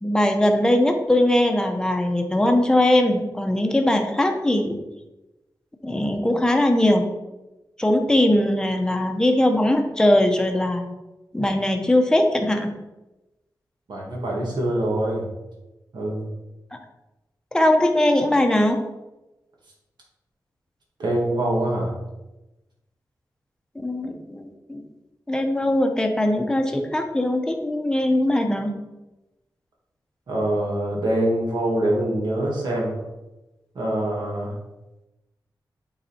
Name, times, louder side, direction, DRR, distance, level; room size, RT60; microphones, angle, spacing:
voice 1, 0.0-4.7 5.8-7.1 7.8-10.9 11.3-12.7 17.5-18.8 23.8-24.8 25.3-28.7, left 1 dB, 10° left, 4 dB, 0.8 m, -20 dB
voice 2, 13.9-15.3 15.9-16.3 21.0-21.9 30.3-33.0 33.8-34.5, right 1 dB, 80° right, -2 dB, 2.1 m, -24 dB
8.2 x 4.0 x 4.3 m, 1.0 s
wide cardioid pair, 160°, 8 cm